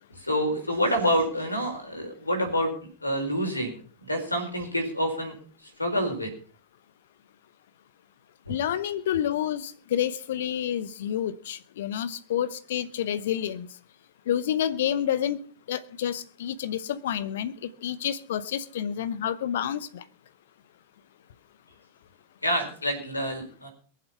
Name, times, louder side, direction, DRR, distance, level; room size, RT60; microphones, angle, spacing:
voice 1, 0.2-2.7 3.0-3.8 4.1-5.3 5.8-6.3 8.5-8.6 22.4-23.7, equal, 85° left, 4.6 m, -27 dB
voice 2, 8.5-13.7 14.3-15.4 15.7-20.0, left 10 dB, 60° left, 1.1 m, -29 dB
22.0 x 7.6 x 5.8 m
figure-of-eight pair, 90°, 0 cm